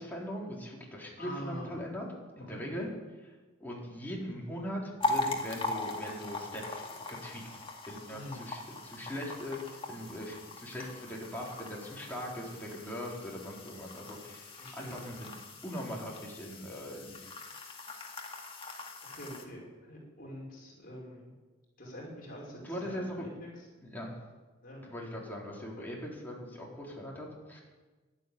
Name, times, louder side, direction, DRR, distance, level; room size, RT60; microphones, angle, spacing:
voice 1, 0.0-2.9 3.6-7.6 7.9-15.3 15.6-17.3 22.6-23.3 23.9-24.1 24.9-27.6, equal, 10° left, -3 dB, 3.9 m, -40 dB
voice 2, 1.1-1.8 2.5-2.8 8.1-8.5 8.9-9.1 14.5-15.0 19.0-21.3 21.8-23.7 24.6-24.8 25.8-25.9, equal, 50° left, -2 dB, 5.3 m, -45 dB
sound 1, 5.0-19.4, left 2 dB, 30° left, 2.0 m, -40 dB
12.0 x 12.0 x 9.4 m, 1.3 s
head